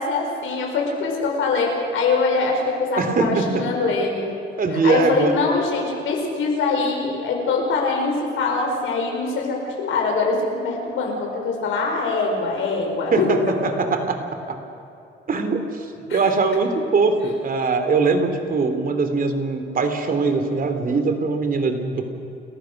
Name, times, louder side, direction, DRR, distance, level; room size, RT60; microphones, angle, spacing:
voice 1, 0.0-4.3 4.7-13.3 16.1-16.2, left 4 dB, 80° left, 1 dB, 5.2 m, -23 dB
voice 2, 3.0-3.6 4.6-5.3 13.1-14.2 15.3-15.6 16.1-22.1, right 4 dB, 45° right, 7 dB, 2.8 m, -21 dB
29.5 x 14.5 x 6.4 m, 2.7 s
cardioid pair, 90°, 20 cm